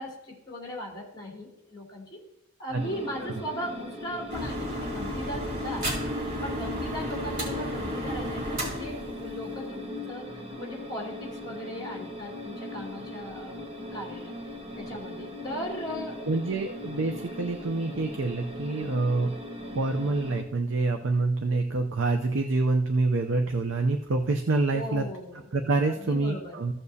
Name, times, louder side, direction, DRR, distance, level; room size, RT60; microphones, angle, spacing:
voice 1, 0.0-2.2 2.6-5.9 6.4-10.3 10.6-14.3 14.8-16.2 24.7-25.4 26.0-26.6, equal, 20° left, -2 dB, 2.7 m, -38 dB
sound 1, 2.8-20.4, left 1 dB, 30° right, 0.9 m, -39 dB
sound 2, 4.3-9.8, equal, 45° right, 2.9 m, -33 dB
voice 2, 16.3-19.3 19.7-25.0 25.5-26.7, right 3 dB, 80° right, 4 dB, 0.6 m, -26 dB
15.0 x 6.9 x 2.8 m, 0.89 s
head